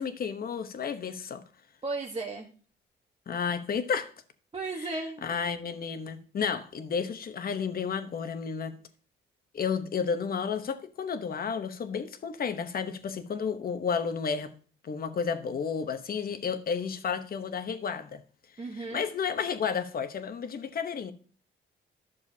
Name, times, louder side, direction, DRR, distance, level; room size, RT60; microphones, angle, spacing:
voice 1, 0.0-1.4 3.3-4.1 4.8-8.8 9.5-14.5 14.8-18.2 18.7-21.1, left 6 dB, 50° left, 1.0 m, -32 dB
voice 2, 1.8-2.5 4.5-5.2 18.6-19.1, right 3 dB, 30° right, 1.1 m, -35 dB
11.0 x 6.7 x 2.7 m
cardioid pair, 90°, 20 cm